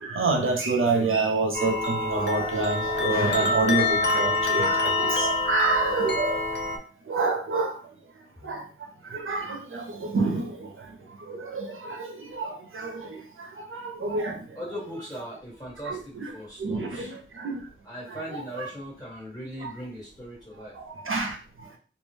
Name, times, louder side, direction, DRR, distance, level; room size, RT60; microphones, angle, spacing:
voice 1, 0.0-6.4 7.1-7.8 8.4-8.6 9.1-10.6 11.3-13.2 13.7-14.4 15.9-16.3 16.6-17.6 18.1-18.7 19.6-19.7 21.1-21.4, right 3 dB, 80° right, 3 dB, 0.5 m, -27 dB
sound 1, 1.5-6.8, left 3 dB, 55° left, 0.5 m, -26 dB
voice 2, 14.5-17.1 17.8-20.7, equal, 20° left, -5 dB, 1.4 m, -39 dB
2.2 x 2.1 x 3.1 m, 0.37 s
wide cardioid pair, 60°, 21 cm